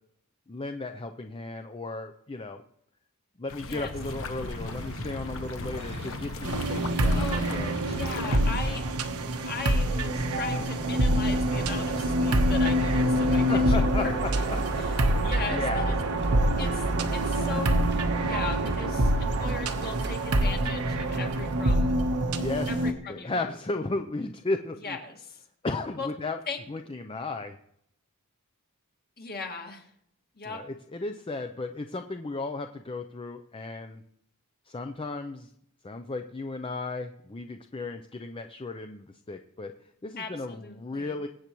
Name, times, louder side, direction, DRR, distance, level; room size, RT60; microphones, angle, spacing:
voice 1, 0.5-2.6 3.4-7.7 8.5-8.6 13.5-14.1 14.8-15.2 15.5-15.9 22.4-22.7 23.1-25.0 25.6-26.4 26.7-27.6 30.4-34.0 34.7-35.5 35.8-39.7 40.0-41.3, left 3 dB, 25° left, 6 dB, 0.5 m, -35 dB
sound 1, 3.5-8.7, left 3 dB, 65° left, 0.8 m, -37 dB
sound 2, 3.9-21.8, right 3 dB, 50° right, 0.7 m, -41 dB
sound 3, 6.4-22.9, right 1 dB, 85° right, 1.1 m, -26 dB
voice 2, 7.8-8.8 9.5-14.1 14.8-16.0 16.6-17.8 18.2-22.0 22.7-23.5 24.8-25.4 26.0-26.1 26.5-26.6 29.2-29.9 30.4-30.6 40.2-41.1, left 4 dB, 45° left, 2 dB, 2.0 m, -38 dB
23.5 x 8.4 x 3.1 m, 0.72 s
head